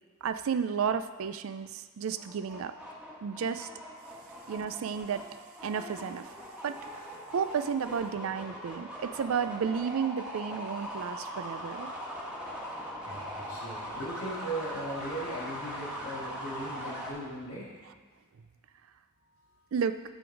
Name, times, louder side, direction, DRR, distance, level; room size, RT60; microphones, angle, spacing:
voice 1, 0.2-2.7 3.2-3.7 4.5-5.2 5.6-6.3 6.6-11.9 19.7-20.0, right 6 dB, 70° right, 11 dB, 0.4 m, -32 dB
sound 1, 2.2-17.1, equal, 5° right, 1.4 m, -41 dB
voice 2, 13.0-17.7, right 1 dB, 85° left, -4 dB, 2.2 m, -38 dB
11.0 x 3.9 x 4.6 m, 1.5 s
head